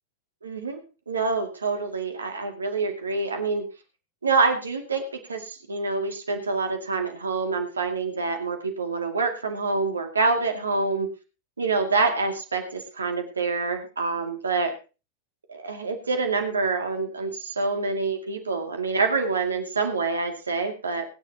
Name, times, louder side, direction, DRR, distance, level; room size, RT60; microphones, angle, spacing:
voice 1, 0.4-0.8 1.1-3.6 4.2-11.1 11.6-14.7 15.5-21.0, right 4 dB, 75° right, 4 dB, 2.5 m, -26 dB
21.0 x 10.0 x 3.0 m, 0.32 s
figure-of-eight pair, 90°, 0 cm